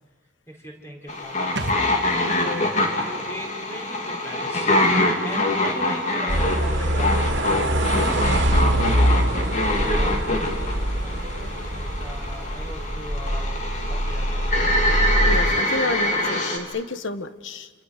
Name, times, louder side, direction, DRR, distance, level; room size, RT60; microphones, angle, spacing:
voice 1, 0.5-1.7 3.0-4.8 5.2-8.6 9.1-14.4, equal, 15° left, 0 dB, 4.9 m, -39 dB
sound 1, 1.1-16.6, left 1 dB, 40° left, 2.9 m, -25 dB
sound 2, 1.6-5.1 5.3-5.4, right 2 dB, 70° right, 1.5 m, -38 dB
voice 2, 2.2-2.7 15.3-17.7, left 2 dB, 90° left, 10 dB, 1.3 m, -30 dB
sound 3, 6.3-15.6, right 1 dB, 85° right, 2.3 m, -24 dB
28.5 x 26.0 x 6.7 m, 1.3 s
head